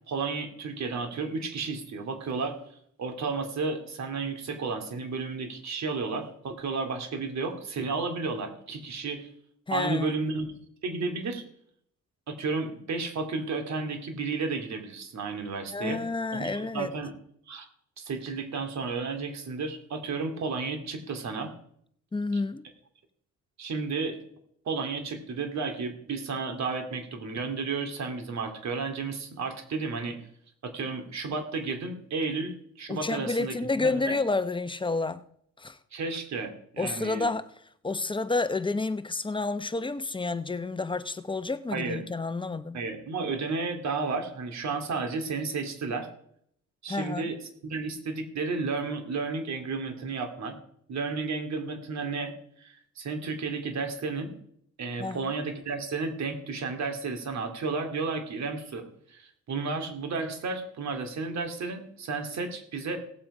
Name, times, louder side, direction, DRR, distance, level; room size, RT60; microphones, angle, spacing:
voice 1, 0.1-2.6 3.0-9.3 9.7-11.4 12.3-16.0 16.3-17.1 17.5-17.7 18.0-21.5 23.6-24.2 24.6-30.2 30.6-34.2 35.9-37.3 41.7-42.0 42.7-46.1 46.8-47.4 47.6-50.6 50.9-52.3 52.6-54.3 54.8-63.0, right 4 dB, 65° right, 2.6 m, -32 dB
voice 2, 9.7-10.2 15.7-16.9 22.1-22.6 32.9-35.2 35.6-35.8 36.8-37.5 37.8-42.8 46.9-47.3 55.0-55.3, left 3 dB, 15° left, 0.8 m, -30 dB
17.5 x 7.5 x 4.9 m
cardioid pair, 90°, 30 cm